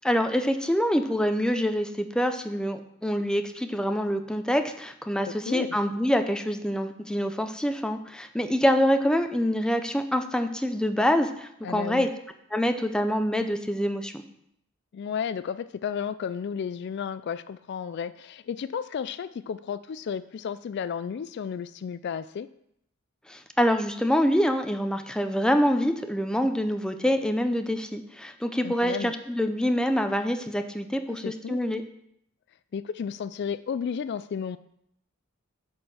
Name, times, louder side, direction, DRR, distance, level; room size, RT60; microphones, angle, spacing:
voice 1, 0.0-12.1 12.5-14.2 23.3-31.8, equal, 5° left, 7 dB, 0.6 m, -26 dB
voice 2, 5.3-5.7 11.6-12.1 14.9-22.5 28.6-29.1 31.1-31.6 32.7-34.6, left 7 dB, 55° left, 15 dB, 0.3 m, -33 dB
10.0 x 4.4 x 6.4 m, 0.74 s
head